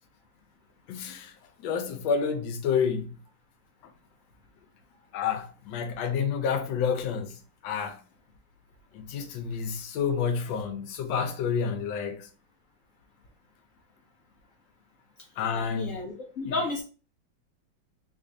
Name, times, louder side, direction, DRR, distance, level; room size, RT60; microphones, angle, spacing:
voice 1, 0.9-1.3 1.6-3.1 5.1-7.3 7.6-8.0 8.9-12.3 15.4-16.0, left 6 dB, 85° left, 1.4 m, -29 dB
voice 2, 15.5-16.8, left 3 dB, 60° left, 0.9 m, -32 dB
3.3 x 2.4 x 3.7 m
omnidirectional pair, 2.0 m